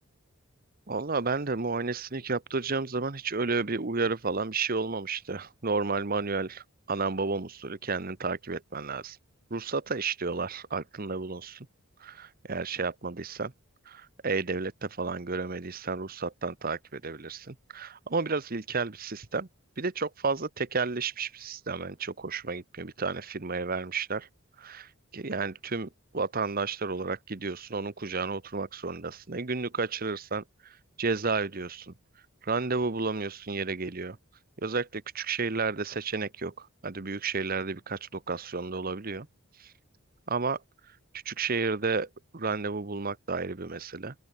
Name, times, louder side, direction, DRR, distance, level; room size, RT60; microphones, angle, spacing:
voice 1, 0.9-6.6 6.9-9.2 9.5-11.7 12.0-13.5 13.9-19.5 19.8-24.3 24.6-25.9 26.1-30.4 31.0-31.9 32.4-34.2 34.6-39.3 40.3-40.6 41.2-42.1 42.3-44.1, right 4 dB, 40° right, 1.0 m, -32 dB
open air
head